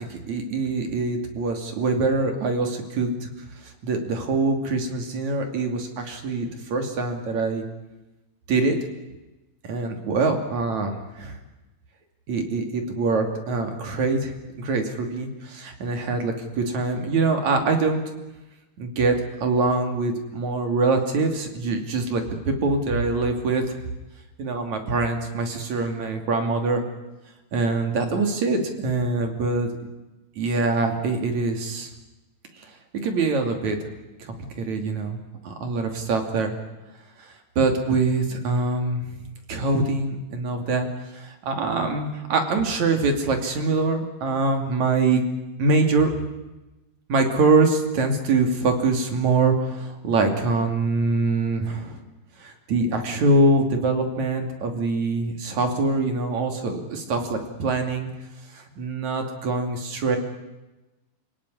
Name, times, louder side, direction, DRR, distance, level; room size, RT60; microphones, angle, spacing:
voice 1, 0.0-3.3 3.6-7.6 8.5-8.8 9.6-11.4 12.3-18.0 18.8-23.8 24.4-26.8 27.5-29.7 30.4-31.9 32.6-32.8 33.0-33.8 34.2-35.2 35.4-36.6 37.2-39.0 39.5-45.2 45.6-46.1 47.1-52.0 52.4-58.1 58.5-60.2, right 3 dB, 50° right, 4 dB, 3.8 m, -24 dB
28.0 x 18.0 x 9.9 m, 1.1 s
omnidirectional pair, 4.4 m